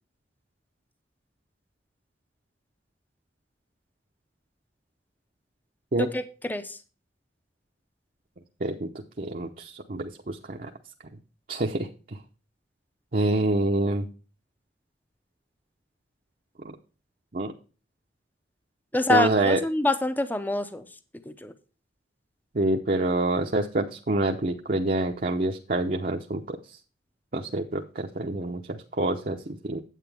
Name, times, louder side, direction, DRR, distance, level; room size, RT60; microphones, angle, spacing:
voice 1, 9.2-10.7 11.5-11.9 13.1-14.1 16.6-16.7 17.3-17.5 19.1-19.6 22.5-26.6 27.3-29.8, right 2 dB, 50° right, 2 dB, 0.8 m, -26 dB
voice 2, 18.9-20.8 21.4-21.5, left 2 dB, 10° left, 11 dB, 0.6 m, -25 dB
9.1 x 8.6 x 3.4 m, 0.35 s
head